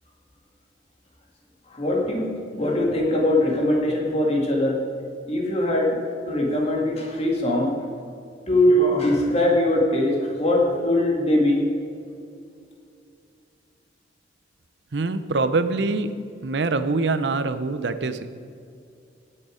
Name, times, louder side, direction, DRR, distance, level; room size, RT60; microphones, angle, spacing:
voice 1, 1.7-4.8 5.3-7.8 8.5-11.7, left 1 dB, 35° left, -1 dB, 2.1 m, -21 dB
voice 2, 14.9-16.1 16.4-18.3, right 3 dB, 70° right, 11 dB, 0.6 m, -24 dB
17.5 x 6.7 x 5.1 m, 2.5 s
head